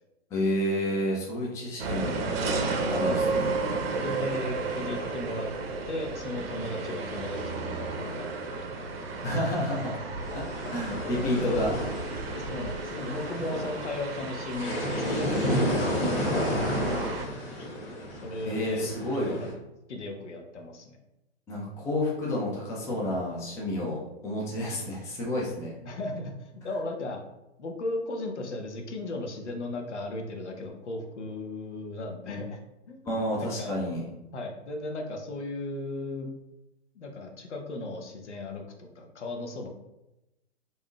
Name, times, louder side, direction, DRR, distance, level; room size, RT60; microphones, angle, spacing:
voice 1, 0.3-2.2 2.9-3.5 9.2-10.1 10.3-10.4 10.7-11.7 18.5-19.4 21.5-25.7 33.1-34.0, left 1 dB, 10° left, -4 dB, 0.4 m, -30 dB
sound 1, 1.8-17.3, right 3 dB, 60° right, 0.6 m, -33 dB
voice 2, 2.8-3.2 3.9-5.5 5.9-8.5 8.8-8.9 10.9-11.6 12.3-15.3 15.8-17.1 18.2-18.9 19.3-19.5 19.9-21.0 25.8-27.2 27.6-32.6 32.9-33.0 33.4-33.8 34.3-36.3 36.9-39.7, left 2 dB, 80° left, 2 dB, 0.8 m, -36 dB
sound 2, 10.2-19.5, equal, 30° left, 0.9 m, -32 dB
3.4 x 2.7 x 2.3 m, 0.94 s
hypercardioid pair, 125°, 34 cm